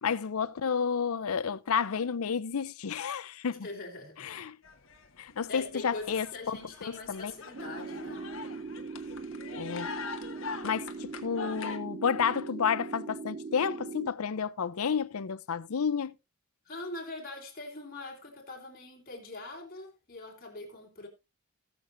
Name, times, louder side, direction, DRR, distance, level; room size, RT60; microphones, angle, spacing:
voice 1, 0.0-3.7 4.2-4.6 5.2-7.3 9.6-9.9 10.6-16.1, left 6 dB, 75° left, 0.6 m, -31 dB
voice 2, 3.6-4.3 5.5-8.3 16.6-21.1, left 2 dB, 40° left, 3.1 m, -42 dB
sound 1, 4.6-5.4 5.6-11.8, left 5 dB, 60° left, 1.3 m, -43 dB
sound 2, 7.5-14.1, right 4 dB, 40° right, 0.5 m, -40 dB
18.5 x 6.8 x 2.6 m
head